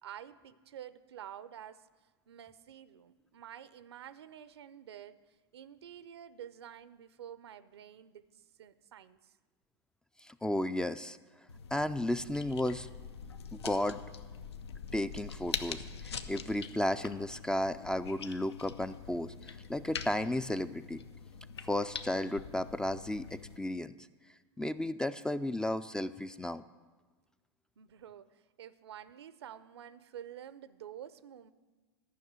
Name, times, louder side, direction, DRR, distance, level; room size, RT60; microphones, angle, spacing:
voice 1, 0.0-1.9 2.3-5.2 5.5-9.3 27.8-31.5, right 10 dB, 80° right, 15 dB, 0.6 m, -49 dB
voice 2, 10.2-11.2 11.7-12.9 13.5-14.0 14.9-19.3 19.7-21.0 21.7-24.0 24.6-26.6, left 1 dB, 5° left, 13 dB, 0.3 m, -33 dB
sound 1, 11.5-23.6, left 6 dB, 85° left, 0.7 m, -44 dB
12.0 x 5.9 x 8.8 m, 1.3 s
hypercardioid pair, 100°, 14 cm